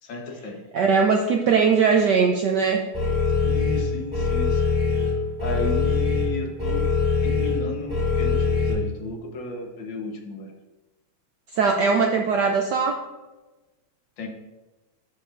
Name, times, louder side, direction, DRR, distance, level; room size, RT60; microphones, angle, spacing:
voice 1, 0.0-0.6 3.4-4.6 5.4-6.8 7.2-10.5 14.2-14.3, left 3 dB, 65° left, 2 dB, 1.8 m, -34 dB
voice 2, 0.7-2.9 11.5-13.0, right 5 dB, 75° right, 3 dB, 1.0 m, -20 dB
sound 1, 2.9-8.7, left 4 dB, 20° right, 2.7 m, -23 dB
13.5 x 5.2 x 2.5 m, 1.1 s
omnidirectional pair, 2.4 m